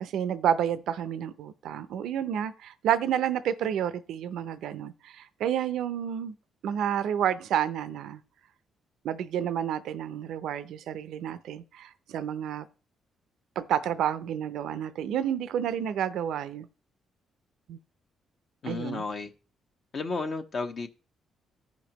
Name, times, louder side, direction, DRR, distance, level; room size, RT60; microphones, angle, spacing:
voice 1, 0.0-6.3 6.6-8.2 9.0-12.7 13.6-16.7 17.7-17.8 18.7-19.0, right 9 dB, 80° right, 0.5 m, -30 dB
voice 2, 18.6-19.3 19.9-20.9, left 4 dB, 50° left, 1.0 m, -32 dB
15.0 x 5.2 x 2.9 m
cardioid pair, 90°, 0 cm